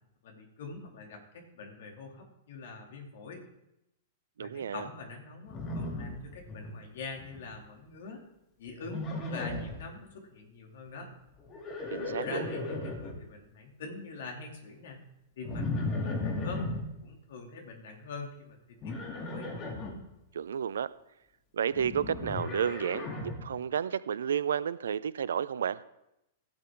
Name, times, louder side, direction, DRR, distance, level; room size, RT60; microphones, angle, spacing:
voice 1, 0.2-3.4 4.4-8.2 8.6-11.1 12.2-15.0 15.4-15.6 16.0-16.2 16.4-16.6 17.0-18.6 18.8-19.5, left 4 dB, 60° left, 1 dB, 2.8 m, -44 dB
voice 2, 4.4-4.8 11.9-12.5 20.3-20.9 21.5-25.8, right 8 dB, 70° right, 18 dB, 0.5 m, -31 dB
Livestock farm animals working animals, 5.5-6.7 7.0-7.5 8.8-9.8 11.4-13.1 15.4-16.8 18.8-19.9 21.7-23.4, left 2 dB, 30° left, 2.8 m, -35 dB
16.0 x 7.7 x 3.8 m, 0.87 s
figure-of-eight pair, 105°, 0 cm